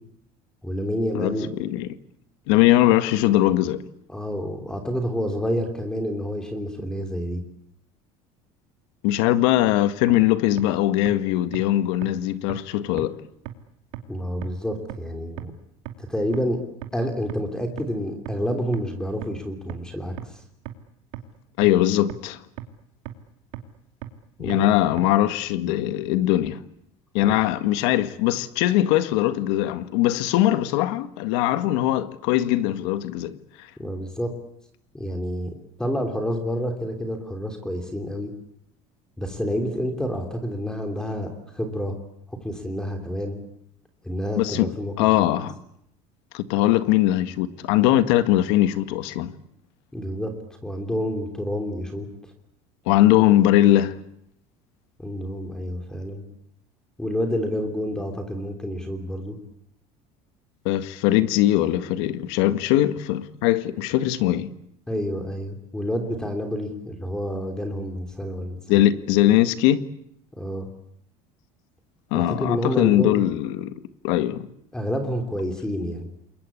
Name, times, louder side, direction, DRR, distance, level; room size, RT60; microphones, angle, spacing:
voice 1, 0.6-1.5 4.1-7.4 14.1-15.5 16.0-16.6 16.9-20.1 24.4-24.7 27.3-27.4 33.8-34.3 34.9-35.5 35.8-38.3 39.2-42.0 42.3-43.4 44.0-45.3 49.9-50.3 50.6-52.1 55.0-56.2 57.0-59.4 64.9-68.8 70.4-70.7 72.1-73.3 74.7-76.1, equal, 5° left, 3.1 m, -28 dB
voice 2, 1.1-1.9 2.5-3.8 9.0-13.2 21.6-22.4 24.4-26.6 27.1-33.4 44.3-44.7 45.0-45.5 46.3-49.3 52.8-54.0 60.6-64.5 68.7-69.8 72.1-73.7 74.0-74.5, left 14 dB, 85° left, 1.8 m, -21 dB
sound 1, 10.1-10.2 10.6-10.7 11.1-11.2 11.5-11.6 12.0-12.1 12.5-12.6 13.0-13.1 13.5-13.6 13.9-14.0 14.4-14.5 14.9-15.0 15.4-15.5 15.9-16.0 16.3-16.4 16.8-16.9 17.3-17.4 17.8-17.9 18.3-18.4 18.7-18.8 19.2-19.3 19.7-19.8 20.2-20.3 20.7-20.8 21.1-21.2 21.6-21.7 22.1-22.2 22.6-22.7 23.1-23.2 23.5-23.6 24.0-24.1 24.5-24.6 25.0-25.1, right 18 dB, 80° right, 2.6 m, -34 dB
28.5 x 22.0 x 8.5 m
cardioid pair, 160°, 15 cm